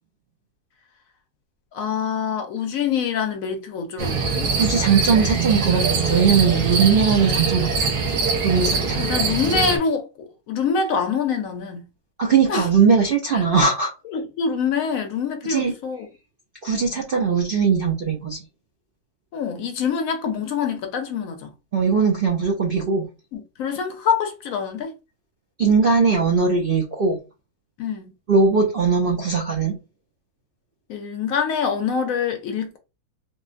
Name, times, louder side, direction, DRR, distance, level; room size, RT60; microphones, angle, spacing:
voice 1, 1.7-4.5 8.9-11.9 12.5-12.7 13.3-13.4 14.1-16.1 19.3-21.5 23.3-24.9 27.8-28.1 30.9-32.8, left 6 dB, 70° left, 1.0 m, -25 dB
sound 1, 4.0-9.8, right 5 dB, 90° right, 1.3 m, -23 dB
voice 2, 4.6-8.0 8.4-9.1 12.2-13.9 15.5-15.7 16.6-18.4 21.7-23.1 25.6-27.2 28.3-29.8, right 5 dB, 60° right, 0.5 m, -20 dB
3.7 x 2.1 x 2.5 m
omnidirectional pair, 1.6 m